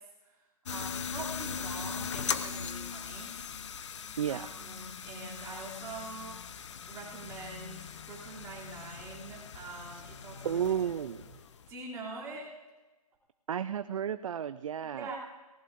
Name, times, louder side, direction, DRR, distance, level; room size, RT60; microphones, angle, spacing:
sound 1, 0.7-11.7, left 7 dB, 50° left, 0.8 m, -40 dB
voice 1, 0.7-3.3 4.3-6.4 6.9-10.7 11.7-12.5 14.9-15.2, right 3 dB, 15° right, -5 dB, 2.8 m, -44 dB
voice 2, 10.4-11.2 13.5-15.1, right 9 dB, 55° right, 13 dB, 0.4 m, -32 dB
18.0 x 18.0 x 2.5 m, 1.2 s
hypercardioid pair, 155°, 20 cm